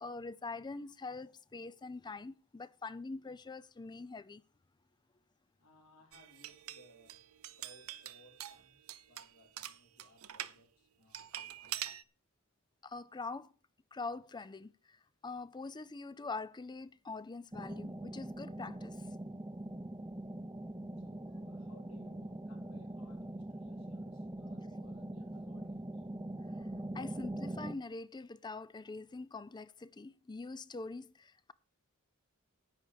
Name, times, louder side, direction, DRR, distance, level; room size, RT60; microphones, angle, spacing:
voice 1, 0.0-4.4 12.8-13.5 13.9-19.1 26.9-31.5, left 3 dB, 20° left, 0.4 m, -44 dB
voice 2, 5.6-7.2 7.5-11.9 21.0-26.1, left 1 dB, 75° left, 4.1 m, -64 dB
sound 1, 6.1-10.6 11.1-12.0, right 12 dB, 75° right, 0.7 m, -45 dB
sound 2, 17.5-27.7, right 1 dB, 15° right, 0.7 m, -43 dB
10.5 x 9.1 x 5.1 m
head